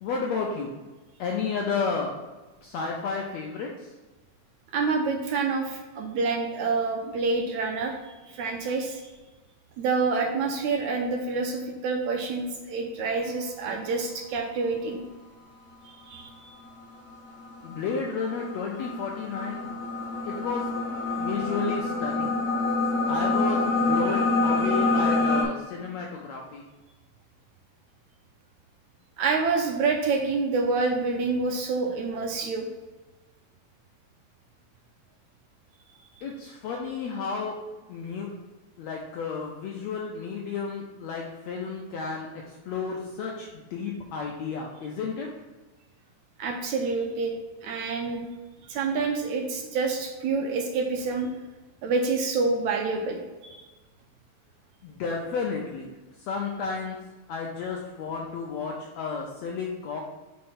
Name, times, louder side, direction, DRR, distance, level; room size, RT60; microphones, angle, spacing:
voice 1, 0.0-0.7 1.2-2.1 2.6-3.7 17.6-19.7 20.3-20.6 21.2-22.3 23.1-26.6 36.2-37.6 37.9-38.3 38.8-42.3 42.7-45.3 54.8-55.9 56.3-57.0 57.3-60.0, left 5 dB, 80° left, 0 dB, 1.6 m, -32 dB
voice 2, 4.7-9.1 9.8-15.0 15.8-16.5 29.2-32.7 46.4-47.4 47.6-48.3 48.6-51.3 51.8-53.7, right 4 dB, 75° right, 2 dB, 1.9 m, -27 dB
sound 1, 16.8-25.4, left 3 dB, 30° right, 1.7 m, -26 dB
5.1 x 4.4 x 5.6 m, 1.2 s
omnidirectional pair, 3.8 m